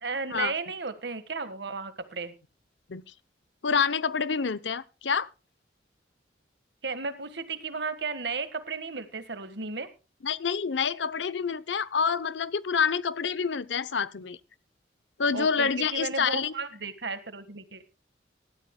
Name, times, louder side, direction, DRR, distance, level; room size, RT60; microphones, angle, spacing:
voice 1, 0.0-2.3 6.8-9.9 15.3-17.8, right 4 dB, 70° right, 1.6 m, -34 dB
voice 2, 3.6-5.3 10.2-14.4 15.2-16.5, left 6 dB, 85° left, 0.7 m, -27 dB
20.0 x 13.5 x 2.2 m
head